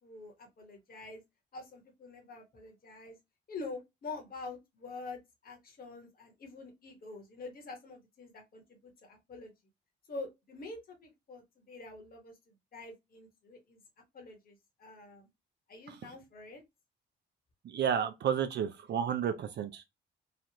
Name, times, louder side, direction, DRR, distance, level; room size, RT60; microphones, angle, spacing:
voice 1, 0.0-1.2 1.5-3.2 3.5-9.5 10.1-13.8 14.1-15.3 15.7-16.6, left 3 dB, 50° left, 1.3 m, -46 dB
voice 2, 17.6-20.0, right 8 dB, 60° right, 0.5 m, -31 dB
3.2 x 2.4 x 2.9 m
cardioid pair, 90°, 20 cm